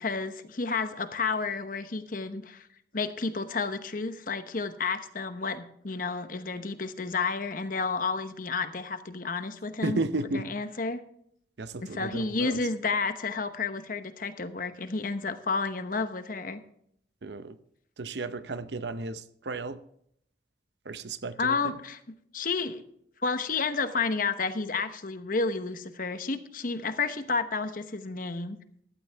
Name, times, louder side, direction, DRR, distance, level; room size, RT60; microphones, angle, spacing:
voice 1, 0.0-2.7 2.9-10.0 10.3-11.0 11.8-16.6 21.4-22.0 22.3-22.8 23.2-28.6, left 4 dB, 50° left, 10 dB, 1.0 m, -31 dB
voice 2, 9.8-10.5 11.6-12.6 17.2-17.6 18.0-19.8 20.8-21.8, right 2 dB, 75° right, 13 dB, 0.7 m, -34 dB
15.5 x 12.0 x 3.4 m, 0.70 s
head